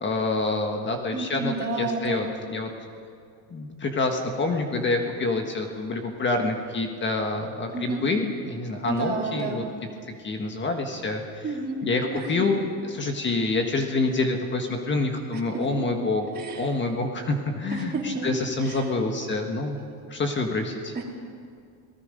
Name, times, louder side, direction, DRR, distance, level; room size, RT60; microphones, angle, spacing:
voice 1, 0.0-2.7 3.5-9.6 10.2-11.4 11.8-16.3 16.6-19.8 20.1-20.9, left 3 dB, 25° left, 4 dB, 1.6 m, -27 dB
voice 2, 1.1-2.2 7.7-8.0 8.9-9.6 11.4-11.8 12.1-12.4 15.3-15.9 16.3-16.7 17.7-18.3 18.6-18.9 20.9-21.0, right 3 dB, 20° right, -3 dB, 4.3 m, -31 dB
28.5 x 19.0 x 5.3 m, 2.3 s
cardioid pair, 150°, 44 cm